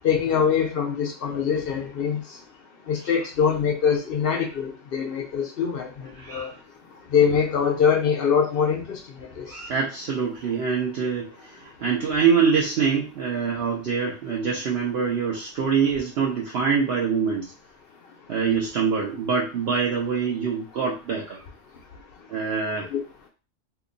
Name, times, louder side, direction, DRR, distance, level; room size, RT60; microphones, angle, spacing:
voice 1, 0.0-2.2 2.9-5.9 6.3-6.5 7.1-9.0 9.4-9.5 22.9-23.0, left 7 dB, 60° left, 3 dB, 0.6 m, -23 dB
voice 2, 6.2-6.6 9.5-17.5 18.3-21.4 22.3-22.9, right 6 dB, 60° right, -2 dB, 0.8 m, -25 dB
2.8 x 2.2 x 3.7 m, 0.33 s
omnidirectional pair, 1.3 m